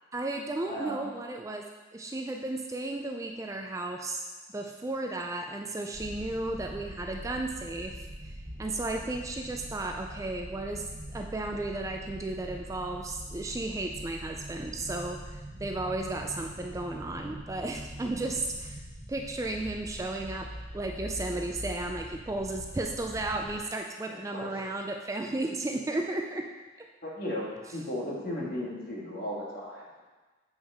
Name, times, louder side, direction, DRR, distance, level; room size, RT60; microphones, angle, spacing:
voice 1, 0.1-1.6 1.9-4.3 4.5-8.3 8.6-10.9 11.1-18.8 19.1-20.5 20.7-26.5, right 2 dB, 15° right, 2 dB, 0.3 m, -34 dB
voice 2, 0.6-1.1 24.0-24.5 27.0-30.0, left 1 dB, 55° left, -4 dB, 1.7 m, -36 dB
sound 1, 5.9-23.6, equal, 75° right, 1.8 m, -43 dB
7.1 x 5.3 x 3.5 m, 1.2 s
head